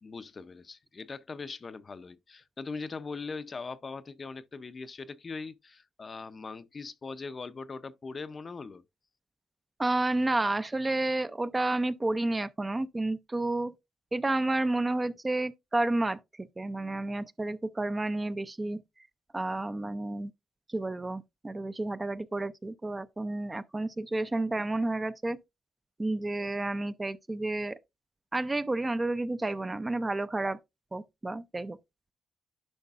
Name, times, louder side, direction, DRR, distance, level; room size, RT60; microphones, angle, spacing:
voice 1, 0.0-8.8, left 4 dB, 35° left, 0.5 m, -41 dB
voice 2, 9.8-13.7 14.1-18.8 19.3-20.3 20.7-25.4 26.0-27.8 28.3-30.6 30.9-31.8, right 2 dB, 20° right, 0.4 m, -31 dB
10.5 x 5.2 x 2.4 m
cardioid pair, 90°, 0 cm